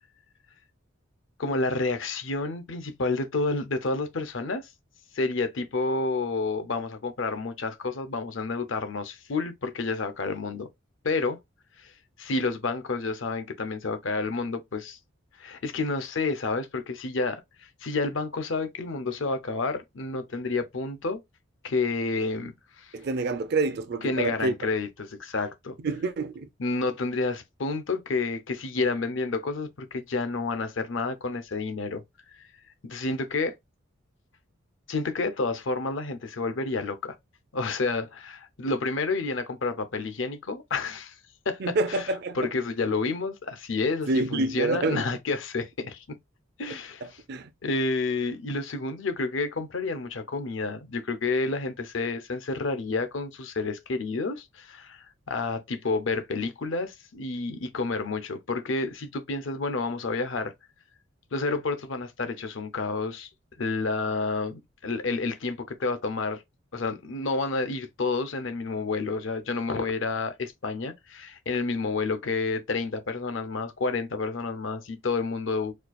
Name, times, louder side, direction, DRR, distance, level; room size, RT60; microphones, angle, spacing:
voice 1, 1.4-4.7 5.1-10.7 11.0-11.4 11.8-11.9 12.2-15.0 15.4-21.2 21.6-22.9 24.0-25.8 26.6-32.0 32.4-32.5 32.8-33.5 34.9-37.2 37.5-41.1 41.5-46.2 46.6-47.2 47.6-60.5 61.3-63.3 63.6-66.4 66.7-75.7, left 3 dB, 65° left, 0.6 m, -30 dB
voice 2, 22.9-24.5 25.8-26.5 41.6-42.4 44.1-45.0 47.0-47.5, right 3 dB, 50° right, 0.4 m, -27 dB
4.3 x 2.4 x 2.4 m
head